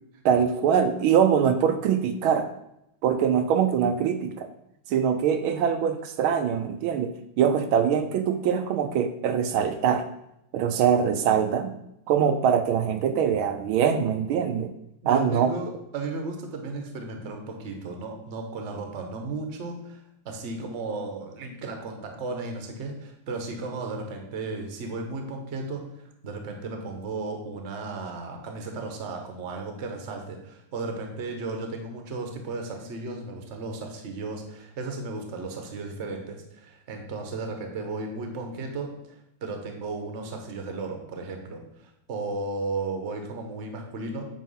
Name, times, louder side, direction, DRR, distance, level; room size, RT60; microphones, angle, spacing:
voice 1, 0.2-2.5 3.0-4.5 4.9-10.1 10.5-11.8 12.1-14.7 15.1-15.5, right 8 dB, 80° right, 8 dB, 1.4 m, -23 dB
voice 2, 15.0-25.8 26.2-44.2, right 3 dB, 45° right, 3 dB, 1.1 m, -35 dB
9.1 x 3.0 x 5.5 m, 0.80 s
omnidirectional pair, 2.3 m